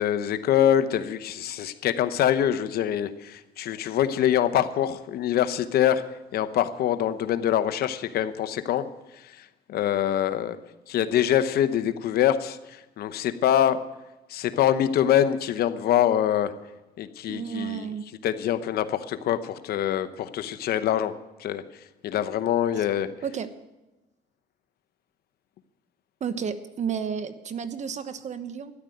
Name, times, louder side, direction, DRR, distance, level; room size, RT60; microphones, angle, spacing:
voice 1, 0.0-6.0 6.3-8.9 9.2-10.6 10.9-13.8 14.3-16.5 17.0-17.9 18.2-21.1 21.4-21.6 22.0-23.1, left 10 dB, 65° left, 12 dB, 0.9 m, -24 dB
voice 2, 17.3-18.0 22.8-22.9 23.2-23.5 26.2-28.7, right 7 dB, 45° right, 11 dB, 1.1 m, -32 dB
13.0 x 10.5 x 7.9 m, 1.0 s
cardioid pair, 110°, 17 cm